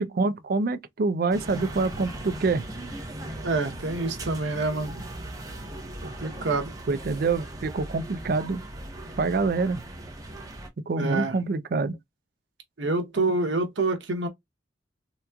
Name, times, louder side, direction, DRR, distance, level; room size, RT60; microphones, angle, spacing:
voice 1, 0.0-2.6 6.9-8.6 9.2-9.8 10.9-12.0, right 3 dB, 55° right, 0.4 m, -26 dB
sound 1, 1.3-10.7, right 1 dB, 20° right, 0.8 m, -38 dB
voice 2, 3.4-5.0 6.0-6.7 11.0-11.4 12.8-14.3, right 3 dB, 85° right, 0.9 m, -27 dB
3.5 x 2.9 x 2.3 m
head